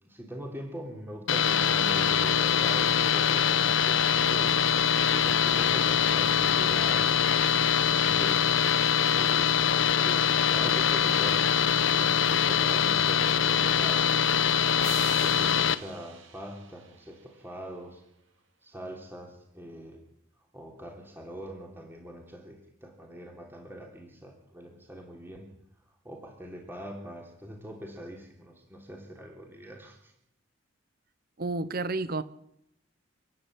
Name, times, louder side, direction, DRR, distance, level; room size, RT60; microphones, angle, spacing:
voice 1, 0.0-4.5 5.2-8.5 9.1-14.2 14.8-18.0 18.6-20.0 20.5-25.5 26.0-30.1, equal, 10° right, 3.4 m, -42 dB
sound 1, 1.3-15.7, left 7 dB, 70° left, 1.0 m, -24 dB
sound 2, 14.8-17.5, right 7 dB, 75° right, 2.6 m, -43 dB
voice 2, 31.4-32.2, right 3 dB, 50° right, 1.0 m, -30 dB
30.0 x 10.5 x 8.8 m
head